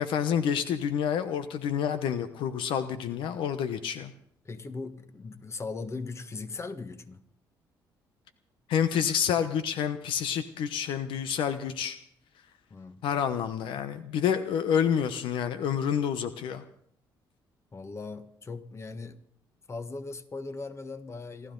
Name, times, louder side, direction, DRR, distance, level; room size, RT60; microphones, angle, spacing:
voice 1, 0.0-4.1 8.7-12.0 13.0-16.6, left 8 dB, 80° left, 1.0 m, -28 dB
voice 2, 4.4-7.2 12.7-13.0 17.7-19.2 19.7-21.5, left 3 dB, 35° left, 1.6 m, -39 dB
28.0 x 12.5 x 3.9 m
cardioid pair, 80°, 9 cm